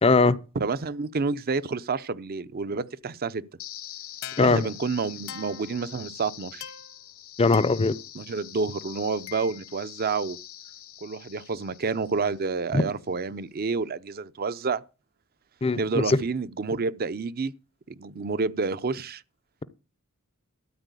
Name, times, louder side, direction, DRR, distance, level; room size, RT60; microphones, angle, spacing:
voice 1, 0.0-0.4 4.4-4.7 7.4-7.9 12.7-12.8 15.6-16.2, left 3 dB, 25° left, 0.6 m, -20 dB
voice 2, 0.5-3.4 4.4-6.6 8.1-10.4 11.0-14.8 15.8-17.5 17.9-19.2, right 4 dB, 45° right, 0.6 m, -29 dB
sound 1, 3.6-12.6, left 11 dB, 70° left, 1.2 m, -43 dB
13.0 x 4.4 x 8.3 m
head